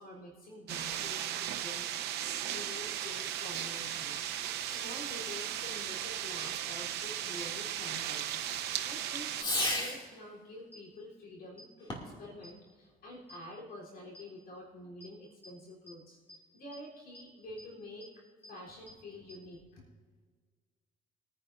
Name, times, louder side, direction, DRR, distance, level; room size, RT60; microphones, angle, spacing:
voice 1, 0.0-4.3 4.6-8.3 8.8-19.9, left 1 dB, 65° left, -3 dB, 3.7 m, -48 dB
sound 1, 0.7-9.4, right 11 dB, 80° right, 0.8 m, -36 dB
Fireworks, 3.1-10.2 11.8-12.3, left 1 dB, 25° left, 2.5 m, -41 dB
sound 2, 10.7-10.8 11.6-11.7 12.4-12.5 13.3-13.4 14.1-14.2 15.0-15.1 15.4-15.5 15.9-16.0 16.3-16.4 16.7-16.8 17.1-17.2 17.6-17.7 18.0-18.1 18.4-18.5 18.9-19.0 19.3-19.4, left 1 dB, 15° right, 3.3 m, -51 dB
22.5 x 10.0 x 2.6 m, 1.5 s
cardioid pair, 110°, 17 cm